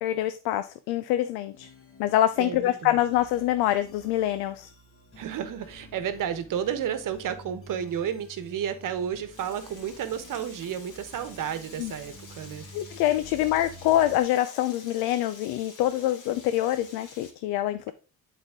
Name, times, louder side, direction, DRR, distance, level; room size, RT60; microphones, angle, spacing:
voice 1, 0.0-1.7 2.0-4.7 11.8-11.9 12.7-17.9, left 13 dB, 90° left, 12 dB, 0.5 m, -25 dB
sound 1, 1.5-14.2, equal, 35° left, 2.1 m, -50 dB
voice 2, 2.4-3.0 5.2-12.7, right 9 dB, 60° right, 11 dB, 1.1 m, -32 dB
Frying (food), 9.3-17.3, left 3 dB, 55° left, 2.5 m, -49 dB
8.0 x 4.3 x 3.6 m, 0.35 s
cardioid pair, 85°, 36 cm